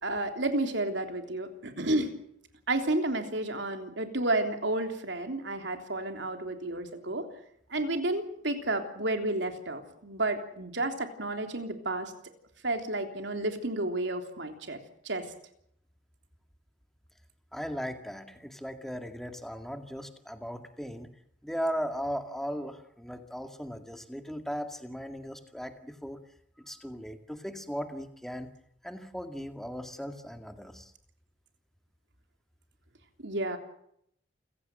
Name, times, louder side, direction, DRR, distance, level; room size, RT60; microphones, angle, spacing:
voice 1, 0.0-2.1 2.7-7.3 7.7-12.1 12.6-14.8 15.0-15.3 33.2-33.6, right 2 dB, 65° right, 6 dB, 3.3 m, -31 dB
voice 2, 17.5-21.1 21.4-26.2 26.6-28.5 28.8-30.9, equal, ahead, 6 dB, 2.1 m, -37 dB
29.0 x 16.0 x 7.8 m, 0.72 s
head